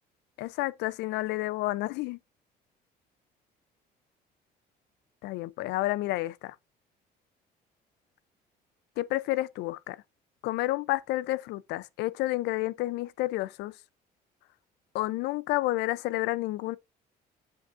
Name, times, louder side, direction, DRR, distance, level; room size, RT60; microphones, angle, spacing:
voice 1, 0.4-2.2 5.2-6.6 9.0-10.0 10.4-13.7 14.9-16.8, left 18 dB, 85° left, 0.4 m, -30 dB
7.8 x 5.3 x 2.4 m
cardioid pair, 110°, 17 cm